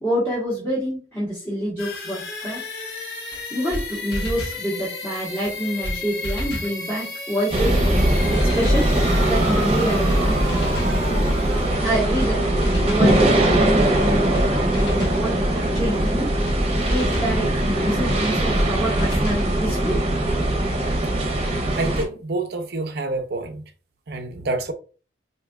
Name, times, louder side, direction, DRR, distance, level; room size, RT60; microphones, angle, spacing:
voice 1, 0.0-2.6 3.5-7.8 8.3-8.9 9.3-10.8 11.8-12.5 12.8-16.3 16.8-20.0, right 1 dB, 15° left, 1.3 m, -27 dB
sound 1, 1.8-15.5, left 2 dB, 65° left, 1.4 m, -34 dB
sound 2, 3.3-3.4 3.7-3.8 4.1-4.6 5.4-5.5 5.8-6.0 6.2-6.7 7.6-7.7 8.0-8.1 8.4-8.9 9.7-9.8 10.1-10.2 10.5-11.0 11.8-11.9 12.2-12.3 12.6-13.1 13.9-14.0 14.3-14.5 14.7-15.2 16.1-16.2 16.5-16.6 16.9-17.3 18.2-18.3 18.6-18.7 19.0-19.5, equal, 90° left, 1.0 m, -29 dB
sound 3, 7.5-22.0, right 1 dB, 35° right, 0.8 m, -21 dB
voice 2, 21.8-23.6 24.1-24.7, right 2 dB, 60° right, 0.6 m, -27 dB
4.5 x 2.7 x 2.4 m
head